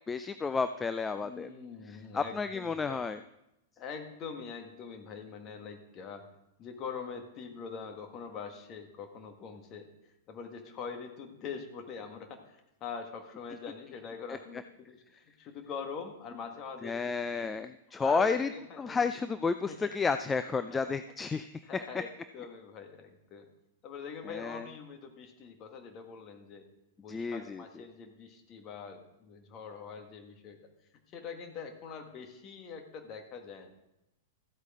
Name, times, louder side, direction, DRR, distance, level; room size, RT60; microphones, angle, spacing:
voice 1, 0.1-1.5 2.1-3.2 16.8-18.5 18.8-21.5 24.3-24.6 27.1-27.6, left 4 dB, 15° left, 11 dB, 0.4 m, -31 dB
voice 2, 1.2-3.1 3.8-6.2 6.6-9.9 10.3-17.5 18.0-19.1 19.7-20.0 20.7-21.0 21.4-22.1 22.3-23.5 23.8-26.6 27.0-30.6 31.1-33.7, left 6 dB, 35° left, 5 dB, 1.8 m, -44 dB
14.0 x 8.2 x 3.8 m, 0.87 s
figure-of-eight pair, 100°, 0 cm